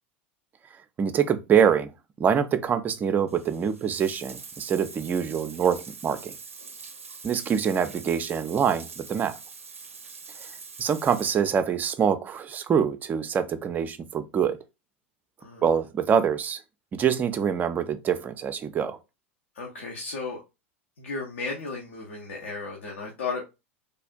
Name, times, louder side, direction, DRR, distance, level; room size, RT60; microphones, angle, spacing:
voice 1, 1.0-1.9 2.2-6.3 7.2-9.3 10.4-10.5 10.8-14.6 15.6-16.6 16.9-19.0, right 7 dB, 25° right, 0.4 m, -25 dB
Bathtub (filling or washing), 3.3-11.3, right 5 dB, 85° right, 0.4 m, -44 dB
voice 2, 19.5-20.4 21.0-23.4, left 4 dB, 70° left, 0.8 m, -34 dB
3.3 x 2.4 x 2.2 m
figure-of-eight pair, 85°, 7 cm